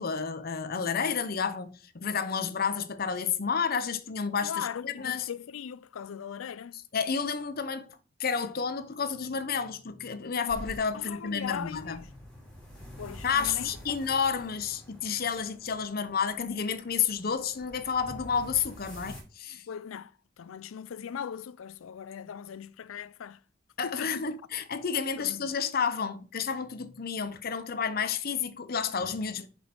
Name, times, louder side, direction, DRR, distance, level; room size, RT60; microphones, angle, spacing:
voice 1, 0.0-5.3 6.9-12.0 13.2-19.6 23.8-29.5, left 6 dB, 50° left, 0.7 m, -31 dB
voice 2, 4.4-6.8 10.9-12.1 13.0-13.7 19.7-20.1 20.4-23.4 23.8-24.3 25.2-25.5, left 7 dB, 90° left, 0.4 m, -39 dB
sound 1, 10.5-19.2, equal, 5° left, 2.5 m, -48 dB
6.4 x 5.2 x 4.5 m
head